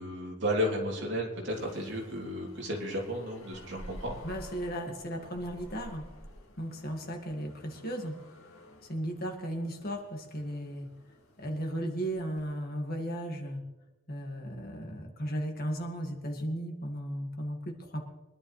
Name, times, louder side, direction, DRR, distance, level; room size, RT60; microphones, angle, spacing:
voice 1, 0.0-4.2, equal, 55° right, -2 dB, 3.2 m, -33 dB
sound 1, 1.5-12.5, equal, 70° left, 2.4 m, -51 dB
voice 2, 4.2-6.0 6.6-8.1 8.9-10.9 11.4-13.6 14.1-18.0, equal, 45° left, 2 dB, 1.9 m, -35 dB
24.0 x 11.0 x 3.3 m, 1.1 s
head